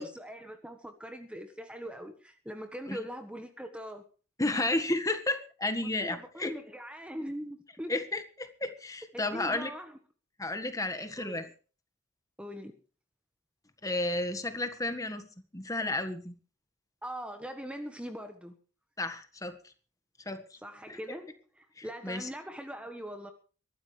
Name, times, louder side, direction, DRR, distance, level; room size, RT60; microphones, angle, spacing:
voice 1, 0.0-4.0 6.0-7.9 9.1-10.0 11.2-11.4 12.4-12.7 17.0-18.6 20.6-23.3, equal, 5° right, 1.2 m, -41 dB
voice 2, 4.4-6.5 7.9-9.7 10.4-11.5 13.8-15.3 15.5-16.3 19.0-19.5 20.2-20.6 20.9-21.2 21.8-22.3, left 2 dB, 15° left, 1.6 m, -32 dB
23.0 x 12.5 x 3.3 m
head